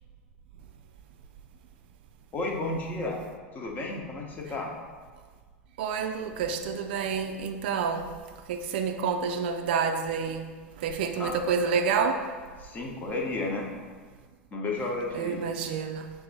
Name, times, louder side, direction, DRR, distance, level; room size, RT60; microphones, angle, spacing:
voice 1, 2.3-3.2 3.5-4.7 11.2-11.3 12.6-13.7 14.5-15.4, left 2 dB, 25° left, 1 dB, 1.0 m, -32 dB
voice 2, 5.8-8.1 8.5-10.5 10.8-12.2 15.1-16.1, right 6 dB, 55° right, 6 dB, 0.4 m, -28 dB
6.4 x 3.6 x 4.1 m, 1.5 s
figure-of-eight pair, 85°, 7 cm